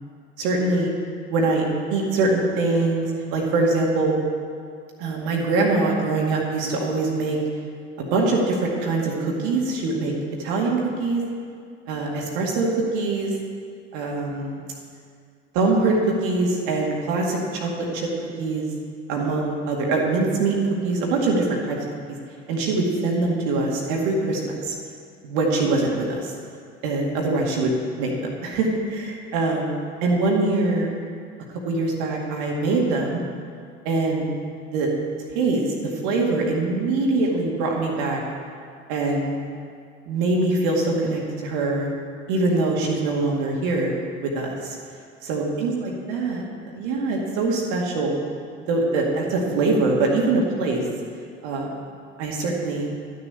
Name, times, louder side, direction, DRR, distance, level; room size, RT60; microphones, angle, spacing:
voice 1, 0.4-0.9 1.3-4.1 5.0-7.4 8.0-10.1 10.4-11.2 11.9-13.3 13.9-14.6 15.5-18.1 18.4-18.6 19.1-20.6 20.8-21.8 22.5-24.7 25.2-26.3 26.8-29.8 30.0-30.9 31.6-33.2 33.9-34.2 34.6-34.9 35.3-38.2 38.9-39.4 40.1-41.9 42.3-44.8 45.2-48.2 48.7-50.8 51.4-51.7 52.2-52.9, right 3 dB, 55° right, -1 dB, 2.2 m, -23 dB
12.0 x 6.8 x 8.1 m, 2.2 s
figure-of-eight pair, 70°, 36 cm